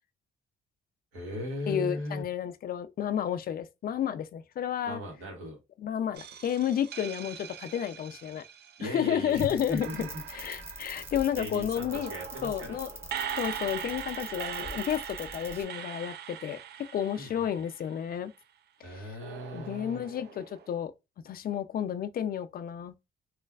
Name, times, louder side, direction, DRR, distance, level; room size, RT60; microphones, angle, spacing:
voice 1, 1.1-2.2 4.8-5.6 8.8-10.1 11.4-12.8 17.1-17.5 18.8-20.0, left 1 dB, 90° right, 1.5 m, -37 dB
voice 2, 1.7-5.0 5.8-8.4 8.8-12.1 12.4-12.9 13.4-16.6 16.9-18.3 18.8-19.2 19.5-20.9 21.2-22.9, left 9 dB, 50° left, 0.4 m, -31 dB
sound 1, 6.2-9.3 9.8-18.2 19.2-20.7, right 9 dB, 55° right, 0.4 m, -41 dB
sound 2, 9.3-15.6, equal, 10° right, 0.7 m, -44 dB
3.1 x 2.4 x 2.3 m
cardioid pair, 90°, 20 cm